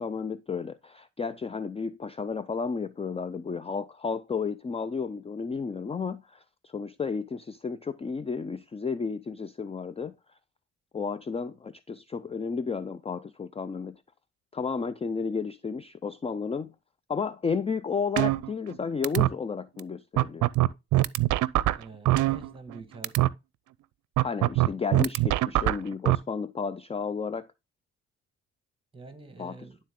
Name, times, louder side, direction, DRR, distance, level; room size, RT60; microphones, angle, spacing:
voice 1, 0.0-10.1 10.9-14.0 14.5-16.7 17.1-20.5 24.2-27.5 29.4-29.7, left 5 dB, 20° left, 0.5 m, -32 dB
sound 1, 18.2-18.8 19.0-19.3 19.8-19.9 20.2-22.8 23.0-23.3 24.2-26.2, right 16 dB, 80° right, 0.5 m, -23 dB
voice 2, 21.7-23.3 28.9-29.8, right 3 dB, 15° right, 1.8 m, -46 dB
11.5 x 3.9 x 3.7 m
cardioid pair, 90°, 30 cm